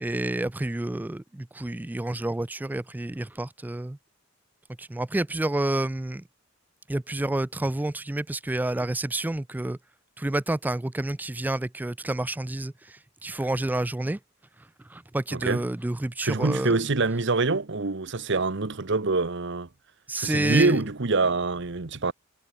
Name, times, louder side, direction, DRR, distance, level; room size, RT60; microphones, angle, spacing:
voice 1, 0.0-4.0 4.8-6.2 6.9-9.8 10.2-14.2 14.9-16.9 20.1-20.8, right 1 dB, 10° right, 0.3 m, -29 dB
voice 2, 15.3-15.6 16.2-19.7 20.1-22.1, right 3 dB, 60° right, 1.1 m, -25 dB
head